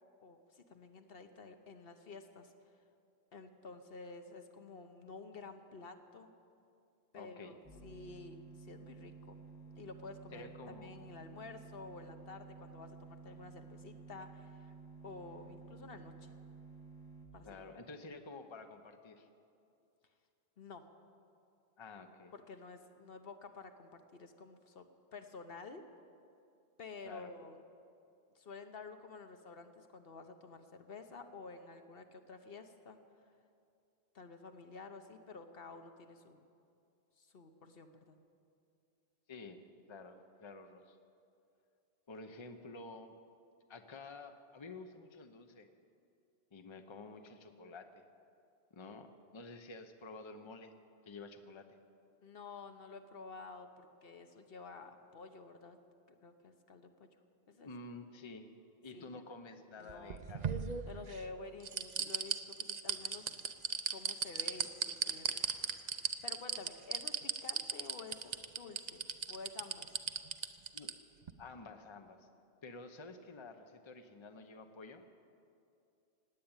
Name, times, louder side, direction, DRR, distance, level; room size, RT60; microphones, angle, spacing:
voice 1, 0.2-2.5 3.3-6.3 7.1-7.5 7.8-9.4 9.8-14.7 15.0-16.3 17.3-17.6 20.6-20.9 22.3-25.8 26.8-27.6 28.3-33.0 34.1-36.5 37.2-38.2 52.2-55.8 56.2-57.1 57.5-57.7 58.9-59.2 59.8-60.2 60.9-63.4 63.9-65.4 66.2-69.9, left 4 dB, 65° left, 7 dB, 1.1 m, -51 dB
voice 2, 7.1-7.6 10.3-10.9 17.4-19.3 21.8-22.3 27.0-27.3 39.3-39.6 39.9-41.0 42.1-43.1 43.7-45.7 46.5-48.0 48.7-50.7 51.0-51.8 57.6-58.5 58.8-60.6 70.7-70.9 71.4-72.3 72.6-75.0, left 3 dB, 30° left, 7 dB, 0.8 m, -50 dB
sound 1, 7.6-17.3, right 4 dB, 20° right, 2.3 m, -53 dB
sound 2, 59.9-61.2 61.6-70.9 71.3-71.4, right 6 dB, 50° right, 0.7 m, -36 dB
17.5 x 9.3 x 8.8 m, 2.5 s
omnidirectional pair, 1.0 m